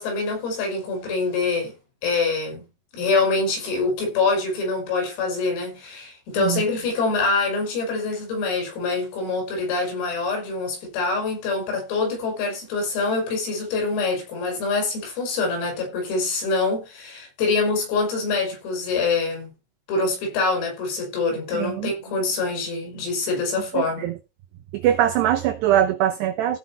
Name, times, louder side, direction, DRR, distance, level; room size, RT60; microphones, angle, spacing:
voice 1, 0.0-1.7 2.0-2.7 2.9-19.5 19.9-24.1, left 3 dB, 80° left, 8.2 m, -25 dB
voice 2, 21.5-21.9 23.7-24.1 24.7-26.6, right 11 dB, 85° right, 2.4 m, -22 dB
15.5 x 6.2 x 4.3 m
omnidirectional pair, 5.9 m